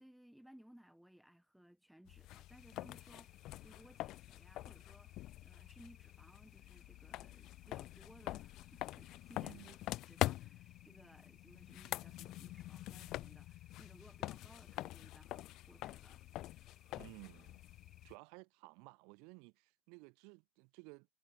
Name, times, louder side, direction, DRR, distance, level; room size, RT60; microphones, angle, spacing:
voice 1, 0.0-9.8 10.0-16.2, equal, ahead, 1.7 m, -62 dB
sound 1, 2.1-18.1, left 16 dB, 45° left, 0.8 m, -45 dB
sound 2, 2.5-18.2, left 6 dB, 25° left, 6.6 m, -68 dB
voice 2, 9.4-9.7 16.9-17.6 18.0-21.1, right 34 dB, 50° right, 2.4 m, -56 dB
figure-of-eight pair, 75°, 0 cm